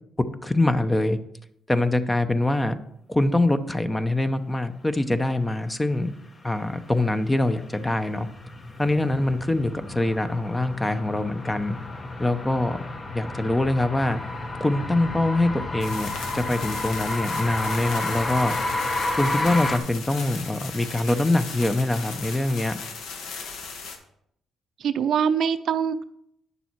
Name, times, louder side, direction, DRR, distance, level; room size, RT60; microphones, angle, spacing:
voice 1, 0.4-1.2 1.7-2.7 3.1-6.1 6.4-8.3 8.8-11.8 12.2-12.8 13.1-14.2 14.6-18.5 19.2-22.8, left 2 dB, 15° left, 10 dB, 0.7 m, -24 dB
sound 1, 7.0-19.8, left 2 dB, 35° left, 1.1 m, -31 dB
sound 2, 15.8-24.0, left 5 dB, 85° left, 1.3 m, -37 dB
voice 2, 24.8-26.0, right 7 dB, 65° right, 11 dB, 0.5 m, -23 dB
9.4 x 6.8 x 4.6 m, 0.74 s
cardioid pair, 90°, 0 cm